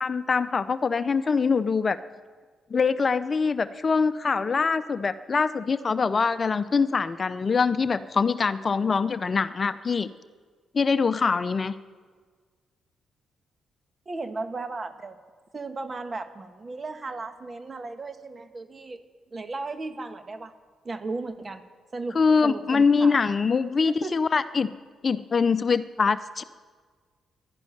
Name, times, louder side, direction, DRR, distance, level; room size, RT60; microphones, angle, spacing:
voice 1, 0.0-2.0 2.7-10.1 10.7-11.7 22.1-24.7 25.0-26.4, left 5 dB, 45° left, 14 dB, 0.6 m, -24 dB
voice 2, 14.0-15.2 15.5-19.0 19.3-20.5 20.8-21.6 21.9-23.2 23.8-24.2, right 3 dB, 40° right, 9 dB, 1.5 m, -35 dB
11.5 x 11.5 x 10.0 m, 1.5 s
hypercardioid pair, 45°, 0 cm